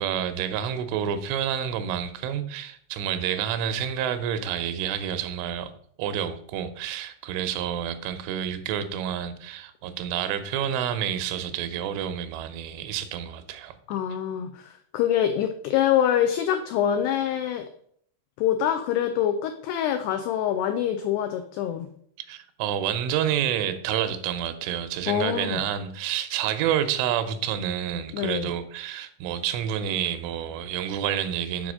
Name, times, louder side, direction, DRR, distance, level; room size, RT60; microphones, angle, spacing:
voice 1, 0.0-5.7 6.0-13.8 22.3-31.7, right 9 dB, 90° right, 3.3 m, -29 dB
voice 2, 13.9-17.7 18.4-21.9 25.1-25.6 28.1-28.5, left 10 dB, 85° left, 2.3 m, -25 dB
7.7 x 4.9 x 6.2 m
omnidirectional pair, 5.4 m